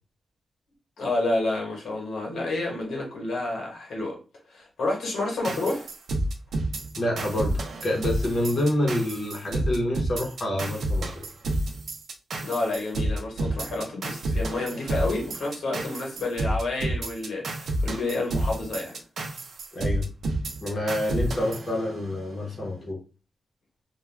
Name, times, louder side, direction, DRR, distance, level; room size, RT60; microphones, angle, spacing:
voice 1, 1.0-4.2 4.5-5.9 12.4-19.0, left 2 dB, 85° left, 1.0 m, -29 dB
sound 1, 5.4-22.3, right 1 dB, 60° right, 0.5 m, -30 dB
voice 2, 7.0-11.3 19.7-20.1 20.6-23.0, left 1 dB, 45° left, 0.8 m, -27 dB
2.3 x 2.2 x 3.2 m
wide cardioid pair, 170°, 0 cm